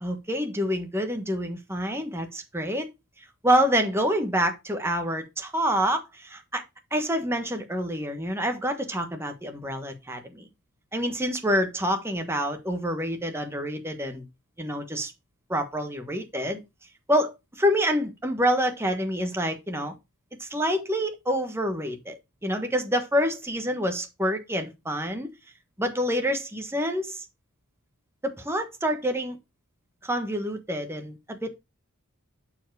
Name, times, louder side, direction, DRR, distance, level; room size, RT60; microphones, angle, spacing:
voice 1, 0.0-2.9 3.4-6.6 6.9-10.5 10.9-14.2 14.6-15.1 15.5-16.6 17.1-19.9 20.4-25.3 25.8-27.2 28.2-29.4 30.0-31.5, equal, 10° right, 1.3 m, -27 dB
7.1 x 4.7 x 4.7 m
head